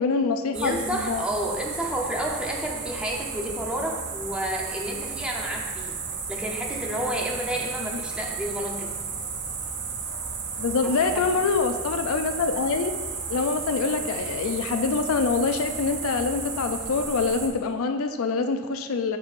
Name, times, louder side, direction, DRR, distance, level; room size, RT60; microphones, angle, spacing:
voice 1, 0.0-1.2 7.9-8.0 10.6-12.9 13.3-19.2, left 4 dB, 80° left, 7 dB, 0.4 m, -25 dB
voice 2, 0.5-6.0 6.3-9.0 10.8-11.2, right 1 dB, 5° right, -2 dB, 0.8 m, -30 dB
sound 1, 0.5-17.5, right 5 dB, 50° right, 0.7 m, -34 dB
7.0 x 6.8 x 2.5 m, 1.3 s
head